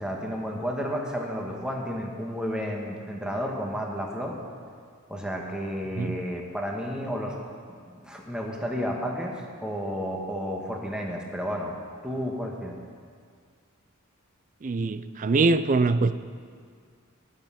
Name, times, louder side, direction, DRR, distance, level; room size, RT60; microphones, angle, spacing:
voice 1, 0.0-4.4 5.1-7.3 7.7-11.7 12.0-12.8, equal, 5° right, 1.5 m, -32 dB
voice 2, 14.6-16.1, right 3 dB, 40° right, 0.4 m, -23 dB
20.5 x 7.5 x 5.8 m
head